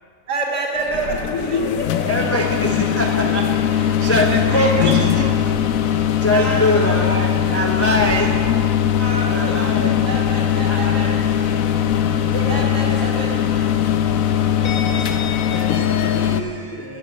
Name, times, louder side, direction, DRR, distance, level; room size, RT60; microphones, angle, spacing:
voice 1, 0.3-2.3 3.7-4.1 4.5-5.4 6.3-7.8 9.0-11.5 12.5-13.7 14.5-14.9, right 2 dB, 50° right, -3 dB, 2.6 m, -29 dB
sound 1, 0.8-16.4, left 9 dB, 90° left, 1.0 m, -20 dB
voice 2, 2.0-5.5 6.2-8.4 9.3-9.9 10.7-10.9 12.3-13.2 14.5-15.2 15.5-17.0, equal, 15° left, 0 dB, 0.5 m, -24 dB
10.5 x 6.0 x 7.5 m, 2.1 s
omnidirectional pair, 1.4 m